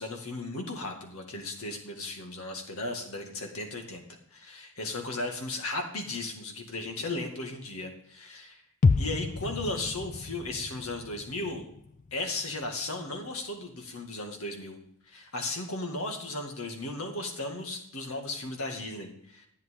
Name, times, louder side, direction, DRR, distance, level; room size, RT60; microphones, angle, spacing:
voice 1, 0.0-8.6 9.0-11.7 12.1-14.8 15.1-19.5, left 2 dB, 85° left, 3 dB, 2.1 m, -36 dB
sound 1, 8.8-12.8 13.1-13.2, left 4 dB, 35° left, 0.3 m, -30 dB
11.5 x 9.2 x 3.7 m, 0.71 s
head